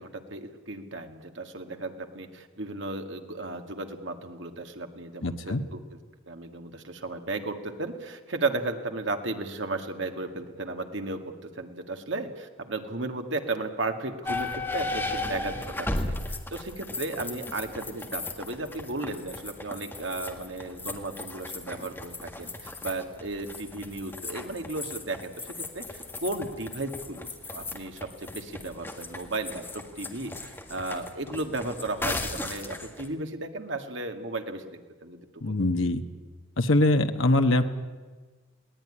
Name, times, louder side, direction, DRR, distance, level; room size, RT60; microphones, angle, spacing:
voice 1, 0.0-6.0 6.3-35.6, right 2 dB, 65° right, 5 dB, 2.0 m, -35 dB
voice 2, 5.2-5.6 35.4-36.0 36.6-37.8, left 2 dB, 75° left, 7 dB, 1.2 m, -23 dB
sound 1, 14.2-33.1, left 2 dB, 10° left, 1.8 m, -36 dB
21.0 x 18.0 x 10.0 m, 1.3 s
head